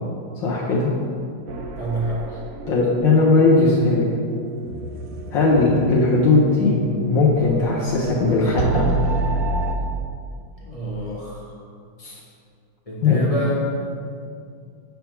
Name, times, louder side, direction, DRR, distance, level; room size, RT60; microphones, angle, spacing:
voice 1, 0.4-0.9 2.7-4.0 5.3-6.8 7.0-8.9 12.0-12.2 13.0-13.2, left 3 dB, 75° left, -6 dB, 1.7 m, -18 dB
sound 1, 1.5-9.8, right 3 dB, 75° right, 0.8 m, -29 dB
voice 2, 1.8-2.2 10.6-11.5 12.9-13.7, equal, 35° left, -5 dB, 0.6 m, -27 dB
8.2 x 3.5 x 5.8 m, 2.3 s
omnidirectional pair, 2.1 m